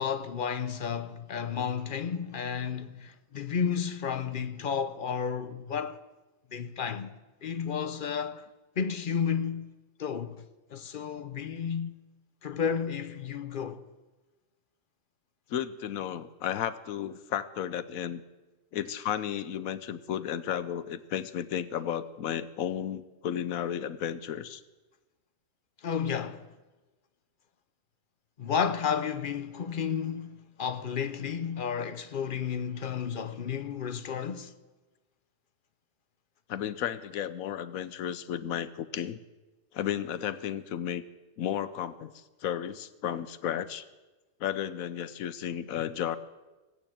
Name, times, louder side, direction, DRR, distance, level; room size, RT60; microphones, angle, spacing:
voice 1, 0.0-6.0 6.5-7.1 7.4-8.4 8.8-9.7 10.0-10.4 10.7-12.0 12.4-13.8 25.8-26.4 28.4-34.5, left 7 dB, 45° left, 0.8 m, -32 dB
voice 2, 15.5-18.2 18.7-24.6 36.5-39.2 39.7-41.0 41.4-43.9 44.4-46.2, left 10 dB, 85° left, 1.1 m, -33 dB
17.0 x 8.4 x 8.7 m
omnidirectional pair, 1.4 m